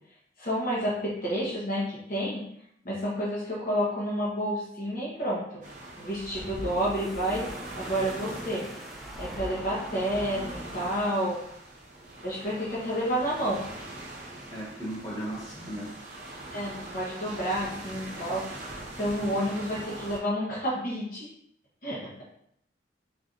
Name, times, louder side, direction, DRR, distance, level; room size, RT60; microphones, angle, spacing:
voice 1, 0.4-2.4 2.8-5.5 6.0-7.5 7.7-8.7 9.2-11.4 12.2-13.6 16.5-18.6 19.0-21.3 21.8-22.1, equal, 50° left, -6 dB, 1.0 m, -30 dB
sound 1, 5.6-20.2, right 1 dB, 45° right, 0.8 m, -42 dB
sound 2, 6.1-11.3, equal, ahead, 0.5 m, -41 dB
voice 2, 14.5-15.9, right 1 dB, 20° left, -6 dB, 1.3 m, -36 dB
4.3 x 3.2 x 2.6 m, 0.72 s
head